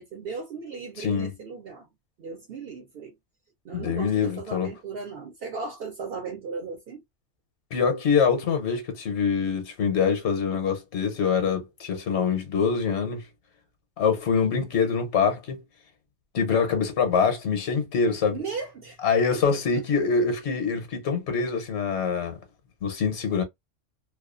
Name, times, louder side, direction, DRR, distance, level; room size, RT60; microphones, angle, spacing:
voice 1, 0.0-1.9 2.2-3.1 3.6-7.0 14.3-14.6 18.3-19.0 19.5-19.6, right 5 dB, 60° right, 0.7 m, -36 dB
voice 2, 1.0-1.3 3.7-4.7 7.7-13.3 14.0-15.6 16.3-18.4 19.0-22.4 22.8-23.4, left 6 dB, 75° left, 1.0 m, -24 dB
2.4 x 2.3 x 2.3 m
omnidirectional pair, 1.2 m